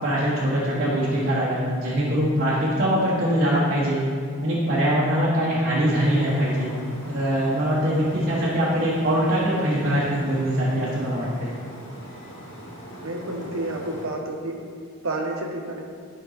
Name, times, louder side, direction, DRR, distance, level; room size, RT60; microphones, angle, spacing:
voice 1, 0.0-4.0 4.4-6.7 7.1-11.5, equal, 45° right, -9 dB, 1.5 m, -22 dB
sound 1, 5.9-14.0, equal, 65° left, 2.2 m, -41 dB
voice 2, 13.0-14.6 15.0-15.8, right 2 dB, 75° right, 0 dB, 1.3 m, -30 dB
12.0 x 5.5 x 4.1 m, 2.1 s
head